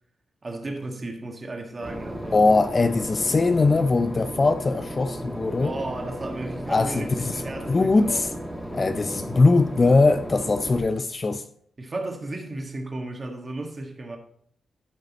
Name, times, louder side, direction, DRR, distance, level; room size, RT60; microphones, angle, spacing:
voice 1, 0.4-2.4 5.6-8.2 11.8-14.2, right 2 dB, 25° right, 1.7 m, -34 dB
Boat Water vehicle / Engine, 1.8-10.8, equal, ahead, 1.9 m, -35 dB
voice 2, 2.3-5.7 6.7-7.2 7.7-8.3 8.7-11.4, left 3 dB, 30° left, 0.4 m, -21 dB
12.0 x 5.4 x 4.1 m
wide cardioid pair, 130°, 0 cm